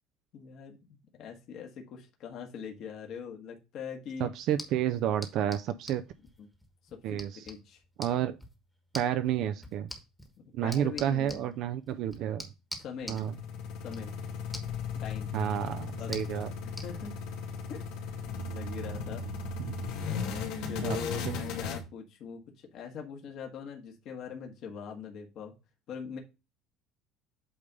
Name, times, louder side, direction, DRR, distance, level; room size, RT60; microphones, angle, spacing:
voice 1, 0.3-0.8 1.1-4.3 6.4-6.5 6.9-7.2 7.4-7.8 10.6-11.4 12.8-13.2 13.8-14.1 15.0-15.3 16.0-16.1 16.8-17.2 17.7-19.2 19.8-25.5 25.9-26.2, left 6 dB, 45° left, 1.5 m, -42 dB
voice 2, 4.2-6.1 7.0-7.5 8.0-8.4 8.9-9.9 10.5-12.5 13.1-13.3 15.3-16.5 19.6-19.8 20.8-21.0 21.3-21.4, right 10 dB, 50° right, 0.5 m, -30 dB
sound 1, 4.4-16.9, equal, 5° left, 1.3 m, -48 dB
sound 2, 13.0-21.8, left 5 dB, 75° left, 2.3 m, -36 dB
8.6 x 3.3 x 5.3 m
cardioid pair, 165°, 0 cm